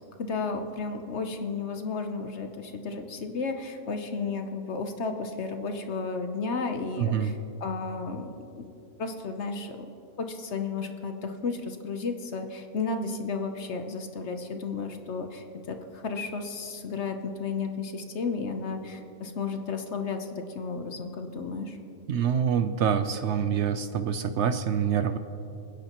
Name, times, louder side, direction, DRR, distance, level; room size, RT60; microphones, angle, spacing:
voice 1, 0.2-7.3 7.6-8.3 8.6-8.7 9.0-9.8 10.2-21.8, left 4 dB, 55° left, 6 dB, 1.0 m, -33 dB
voice 2, 7.0-7.3 22.1-25.2, right 8 dB, 65° right, 10 dB, 0.7 m, -26 dB
27.0 x 10.0 x 3.0 m, 2.7 s
omnidirectional pair, 1.6 m